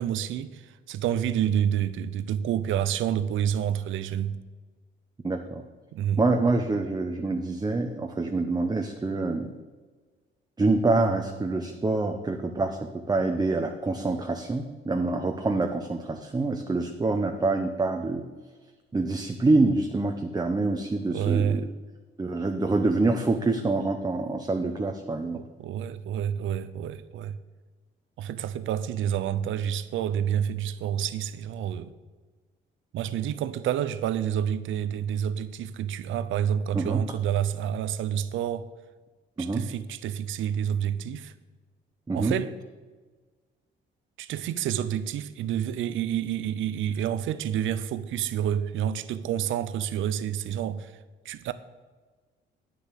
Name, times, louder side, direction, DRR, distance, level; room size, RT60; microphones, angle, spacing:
voice 1, 0.0-4.4 5.9-6.2 21.1-21.7 25.3-27.4 28.2-31.9 32.9-38.7 39.4-41.3 42.1-42.5 44.2-50.9 51.2-51.5, right 9 dB, 80° right, 0.6 m, -28 dB
voice 2, 5.2-5.6 6.2-9.5 10.6-18.2 18.9-21.7 22.2-25.4 36.7-37.0 39.4-39.6 42.1-42.4, right 3 dB, 20° right, 0.8 m, -26 dB
9.4 x 7.0 x 6.8 m
cardioid pair, 90°, 20 cm